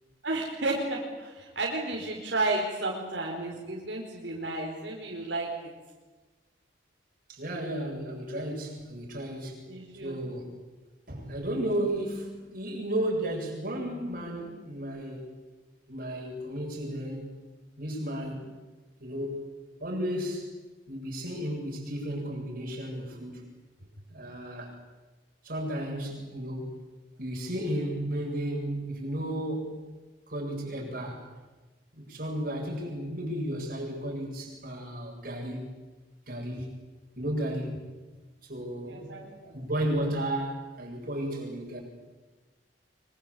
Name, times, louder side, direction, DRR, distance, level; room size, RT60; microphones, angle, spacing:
voice 1, 0.2-5.5 9.7-10.2 38.8-39.5, right 2 dB, 80° right, -1 dB, 4.7 m, -32 dB
voice 2, 7.3-9.6 10.0-10.5 11.1-15.3 15.9-17.3 17.8-18.5 19.0-19.5 19.8-20.5 20.9-23.5 24.1-24.8 25.4-26.7 27.2-29.8 30.3-31.3 31.9-35.6 36.3-36.7 37.2-37.8 38.4-41.8, right 1 dB, 50° right, -1 dB, 8.0 m, -33 dB
25.0 x 24.0 x 8.7 m, 1.2 s
head